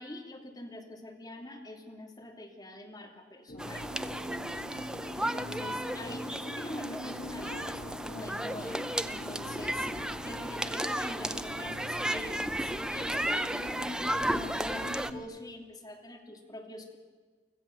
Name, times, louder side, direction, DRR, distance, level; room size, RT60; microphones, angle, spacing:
voice 1, 0.0-3.9 5.1-9.9 10.2-17.0, left 1 dB, 20° left, 1 dB, 2.9 m, -44 dB
sound 1, 3.5-15.2, left 1 dB, 50° left, 2.1 m, -43 dB
sound 2, 3.6-15.1, right 1 dB, 5° right, 0.6 m, -34 dB
sound 3, 3.9-9.2, right 4 dB, 55° right, 2.7 m, -53 dB
25.0 x 15.5 x 7.0 m, 1.5 s
head